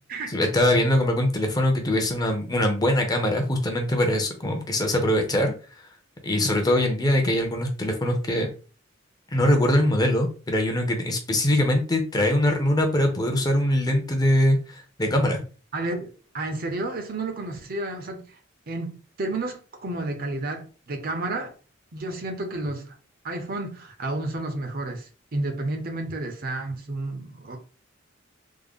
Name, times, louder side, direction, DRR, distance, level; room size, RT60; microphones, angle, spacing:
voice 1, 0.3-5.5 6.2-8.5 9.3-15.4, left 1 dB, 20° left, 0.6 m, -22 dB
voice 2, 15.7-18.4 18.7-21.5 21.9-23.0 23.2-27.6, right 2 dB, 45° right, 0.6 m, -31 dB
3.6 x 2.1 x 3.5 m
head